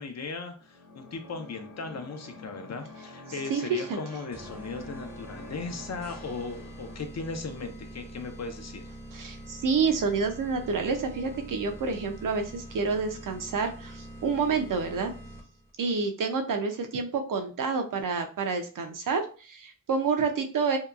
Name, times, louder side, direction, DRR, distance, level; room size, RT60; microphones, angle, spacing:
voice 1, 0.0-8.8, left 4 dB, 55° left, 6 dB, 0.5 m, -37 dB
sound 1, 0.6-7.0, left 2 dB, 90° left, 0.8 m, -47 dB
voice 2, 3.5-3.8 9.1-15.1 15.8-20.8, right 5 dB, 80° right, 5 dB, 0.5 m, -28 dB
sound 2, 4.3-15.7, right 1 dB, 10° right, 0.6 m, -44 dB
2.8 x 2.2 x 2.4 m, 0.37 s
cardioid pair, 65°, 32 cm